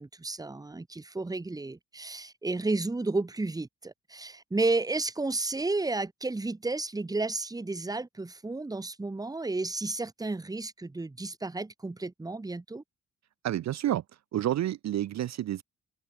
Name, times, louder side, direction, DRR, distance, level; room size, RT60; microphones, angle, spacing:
voice 1, 0.0-12.8, right 3 dB, 10° right, 0.9 m, -32 dB
voice 2, 13.4-14.0 14.3-15.6, right 12 dB, 60° right, 0.5 m, -29 dB
cardioid pair, 95°, 31 cm